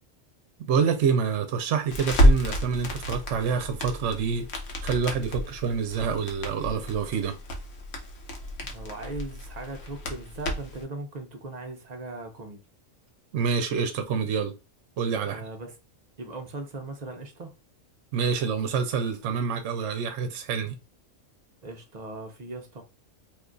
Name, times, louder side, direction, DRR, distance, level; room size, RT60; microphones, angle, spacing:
voice 1, 0.6-4.5 4.8-7.4 13.3-14.5 15.0-15.4 18.1-20.7, right 6 dB, 70° right, 0.9 m, -27 dB
Crackle, 1.9-10.8, equal, 70° left, 1.1 m, -29 dB
voice 2, 8.6-12.6 15.2-15.7 16.2-17.5 21.6-22.8, right 2 dB, 50° right, 0.5 m, -38 dB
2.8 x 2.3 x 3.7 m
omnidirectional pair, 1.4 m